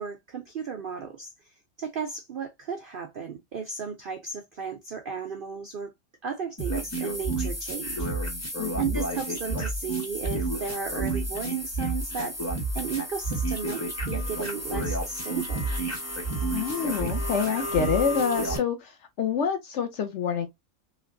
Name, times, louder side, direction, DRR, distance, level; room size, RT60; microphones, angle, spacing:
voice 1, 0.0-5.9 6.2-8.1 8.8-12.4 12.7-15.7, right 6 dB, 70° right, 0.5 m, -34 dB
sound 1, 6.6-18.6, right 2 dB, 15° left, 0.6 m, -30 dB
voice 2, 8.6-9.0 16.5-20.5, left 7 dB, 65° left, 0.8 m, -27 dB
3.2 x 2.8 x 2.5 m
omnidirectional pair, 1.6 m